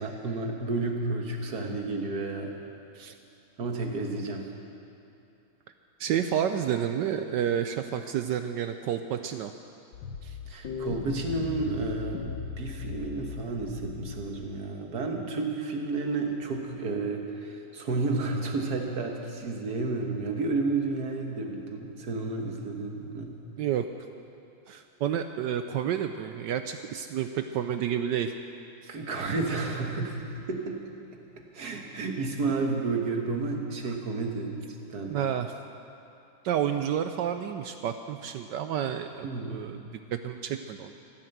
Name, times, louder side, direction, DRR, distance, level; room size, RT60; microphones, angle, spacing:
voice 1, 0.0-2.6 3.6-4.4 10.5-23.4 28.9-30.8 31.4-34.5 34.9-35.2 39.2-39.7, right 3 dB, 50° right, 2 dB, 1.8 m, -31 dB
voice 2, 6.0-9.5 10.2-10.3 23.6-23.9 24.7-28.3 35.1-35.5 36.4-39.8 40.1-41.0, right 9 dB, 75° right, 8 dB, 1.0 m, -30 dB
sound 1, 9.9-14.6, left 7 dB, 65° left, 1.4 m, -38 dB
15.0 x 10.0 x 7.8 m, 2.8 s
omnidirectional pair, 2.3 m